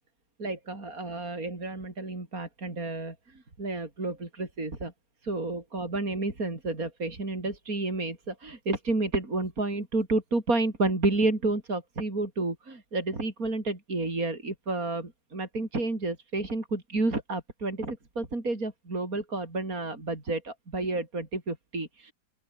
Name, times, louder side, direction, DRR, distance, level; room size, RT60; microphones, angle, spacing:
voice 1, 0.4-4.9 5.2-22.1, right 2 dB, 45° right, 5.2 m, -30 dB
open air
omnidirectional pair, 2.0 m